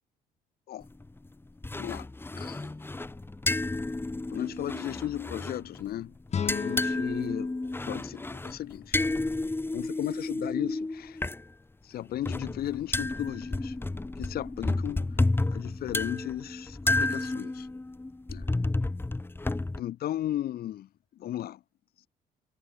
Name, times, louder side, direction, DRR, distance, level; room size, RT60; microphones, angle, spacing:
sound 1, 0.8-1.3 1.6-6.0 6.3-11.4 12.0-19.8, left 2 dB, 15° left, 3.6 m, -31 dB
voice 1, 1.7-2.1 2.4-2.7 4.3-6.1 6.4-7.6 7.9-9.0 9.7-11.2 11.8-13.7 14.2-15.2 15.5-17.7 18.3-18.4 19.8-20.9 21.2-21.6, left 12 dB, 65° left, 4.7 m, -35 dB
sound 2, 6.3-9.3, left 7 dB, 40° left, 4.3 m, -37 dB
cardioid pair, 110°, 17 cm